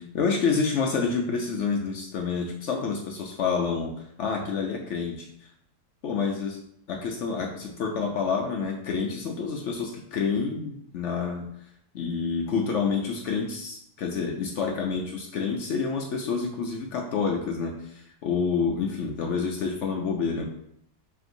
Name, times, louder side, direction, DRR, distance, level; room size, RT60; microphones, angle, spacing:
voice 1, 0.0-5.3 6.0-6.6 6.9-11.5 11.9-20.4, left 5 dB, 75° left, 1 dB, 0.6 m, -28 dB
5.1 x 2.8 x 2.6 m, 0.72 s
omnidirectional pair, 1.8 m